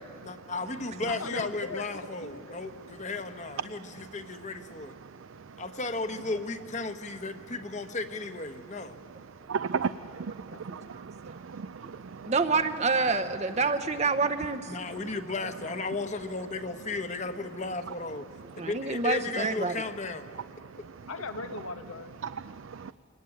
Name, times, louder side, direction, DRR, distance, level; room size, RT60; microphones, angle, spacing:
voice 1, 0.2-4.9 5.6-9.0 14.7-18.3 18.5-20.2, left 3 dB, 35° left, 1.2 m, -35 dB
voice 2, 1.0-2.6 10.5-10.9 21.1-22.1, left 3 dB, 90° left, 1.4 m, -40 dB
voice 3, 3.7-4.1 5.0-5.6 9.3-12.3 14.8-15.0 18.6-18.7 20.6-21.1 22.2-22.9, right 6 dB, 70° right, 0.5 m, -37 dB
voice 4, 12.3-14.7 18.6-19.7, right 4 dB, 35° right, 0.8 m, -27 dB
24.0 x 18.5 x 9.8 m
head